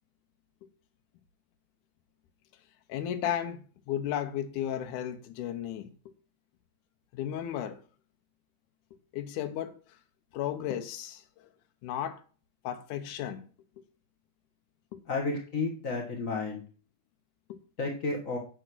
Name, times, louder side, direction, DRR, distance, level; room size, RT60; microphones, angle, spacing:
voice 1, 2.9-5.9 7.1-7.8 9.1-9.7 10.3-11.2 11.8-12.2 12.6-13.4 14.9-15.0 17.5-17.6, left 10 dB, 70° left, 2.3 m, -34 dB
voice 2, 15.1-16.6 17.8-18.4, left 3 dB, 50° left, 0.9 m, -32 dB
9.0 x 6.9 x 6.1 m
omnidirectional pair, 3.9 m